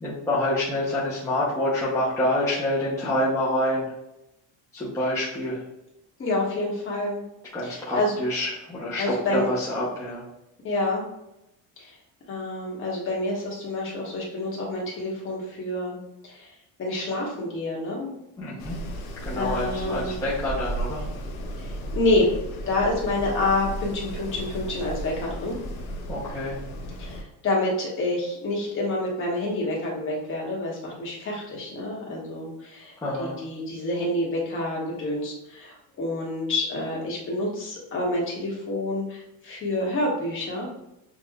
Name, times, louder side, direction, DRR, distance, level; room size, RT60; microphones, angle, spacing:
voice 1, 0.0-3.8 4.7-5.6 7.5-10.2 18.4-18.8 19.2-21.0 26.1-26.6 33.0-33.3, left 1 dB, 10° left, -8 dB, 0.7 m, -27 dB
voice 2, 6.2-7.2 7.6-8.1 9.0-9.5 10.6-11.0 11.8-11.9 12.3-16.0 16.2-16.5 16.8-18.1 19.4-20.2 21.5-25.6 27.0-40.7, left 2 dB, 35° left, -3 dB, 1.3 m, -28 dB
Wind, 18.6-27.2, right 1 dB, 65° left, 0.8 m, -34 dB
6.4 x 2.4 x 2.3 m, 0.87 s
cardioid pair, 175°, 37 cm